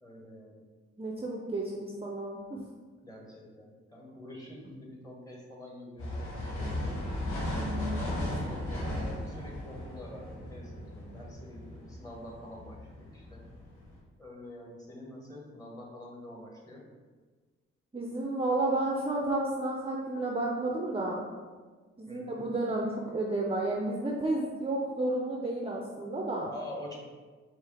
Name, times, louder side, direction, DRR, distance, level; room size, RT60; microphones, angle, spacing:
voice 1, 0.0-0.6 3.0-7.0 8.0-13.4 14.2-16.9 22.1-22.4 26.5-27.0, left 1 dB, 10° left, -2 dB, 1.5 m, -46 dB
voice 2, 1.0-2.6 7.6-8.1 17.9-21.2 22.0-26.5, right 2 dB, 20° right, -2 dB, 0.6 m, -32 dB
sound 1, 6.0-14.0, left 1 dB, 80° left, 1.1 m, -36 dB
4.5 x 3.1 x 3.4 m, 1.4 s
supercardioid pair, 45°, 29 cm